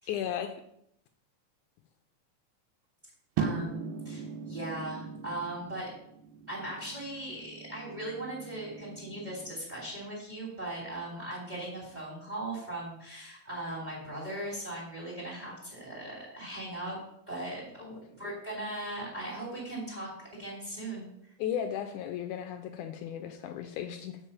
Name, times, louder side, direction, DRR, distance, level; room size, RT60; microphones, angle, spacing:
voice 1, 0.1-0.5 17.8-18.0 21.4-24.2, left 9 dB, 80° left, 6 dB, 1.9 m, -35 dB
voice 2, 3.4-5.9 6.5-17.0 17.3-21.1, right 1 dB, 15° right, -4 dB, 2.6 m, -39 dB
sound 1, 3.4-9.6, right 6 dB, 90° right, 2.3 m, -39 dB
7.4 x 4.7 x 5.5 m, 0.74 s
omnidirectional pair, 3.7 m